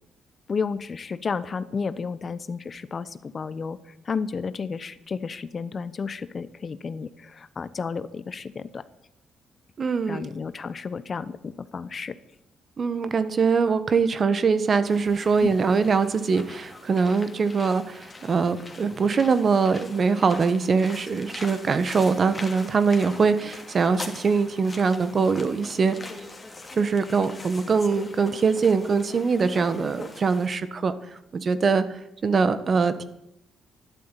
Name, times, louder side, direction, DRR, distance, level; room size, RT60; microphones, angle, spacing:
voice 1, 0.5-8.8 10.1-12.2 15.4-15.5, left 5 dB, 40° left, 15 dB, 0.9 m, -32 dB
voice 2, 9.8-10.3 12.8-25.9 26.8-30.9 31.3-31.8 32.2-33.0, right 5 dB, 45° right, 12 dB, 1.4 m, -23 dB
sound 1, 14.9-30.5, left 3 dB, 20° left, 2.8 m, -42 dB
12.0 x 11.5 x 9.2 m, 0.83 s
cardioid pair, 90°, 0 cm